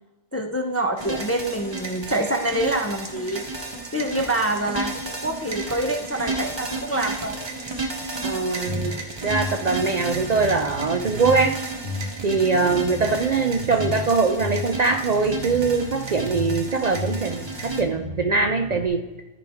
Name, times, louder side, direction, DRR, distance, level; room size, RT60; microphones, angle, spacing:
voice 1, 0.3-3.4 3.9-7.4 12.5-12.8, right 1 dB, 20° left, 3 dB, 0.5 m, -26 dB
sound 1, 1.0-17.8, right 2 dB, 25° right, 1.0 m, -33 dB
voice 2, 8.2-11.6 12.2-19.1, right 4 dB, 50° right, 5 dB, 0.5 m, -22 dB
sound 2, 8.7-8.9 9.3-11.5 11.8-14.0 14.4-16.6 16.9-18.9, left 2 dB, 70° left, 1.8 m, -33 dB
13.0 x 5.1 x 3.5 m, 1.2 s
omnidirectional pair, 1.1 m